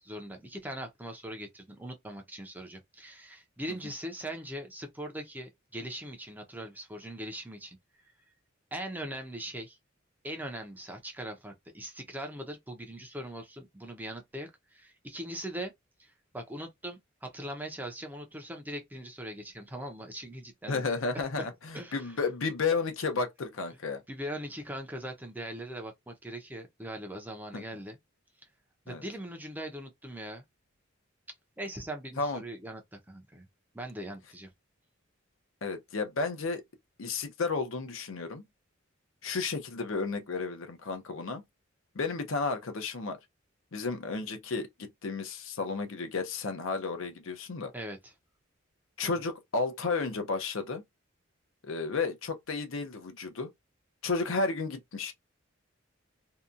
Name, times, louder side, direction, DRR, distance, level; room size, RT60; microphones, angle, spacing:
voice 1, 0.0-7.8 8.7-9.8 10.2-15.7 16.0-20.8 21.1-21.2 21.7-22.1 24.1-28.0 28.9-30.4 31.6-33.5 33.7-34.5 47.7-48.1 49.0-49.1, right 1 dB, 10° right, 0.6 m, -41 dB
voice 2, 20.7-24.0 27.5-27.6 28.9-29.0 32.2-32.4 35.6-36.6 37.0-38.4 39.2-41.4 41.9-43.2 43.7-47.7 49.0-50.8 51.6-53.5 54.0-55.1, left 4 dB, 75° left, 0.7 m, -32 dB
2.8 x 2.2 x 2.4 m
head